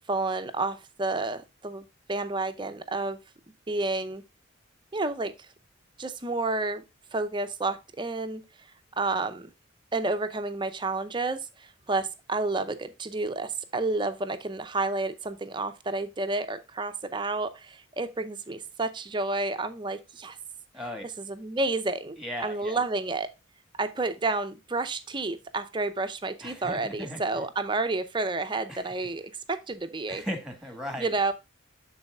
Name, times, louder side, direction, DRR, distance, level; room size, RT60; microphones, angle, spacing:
voice 1, 0.1-3.2 3.7-4.2 4.9-5.5 6.0-6.8 7.1-8.4 9.0-9.5 9.9-20.4 21.2-23.3 23.8-30.2 31.0-31.3, right 3 dB, 25° right, 0.6 m, -30 dB
voice 2, 22.2-22.8 26.4-27.4 28.7-28.8 30.1-31.1, equal, 5° right, 1.5 m, -37 dB
12.0 x 4.1 x 2.3 m
head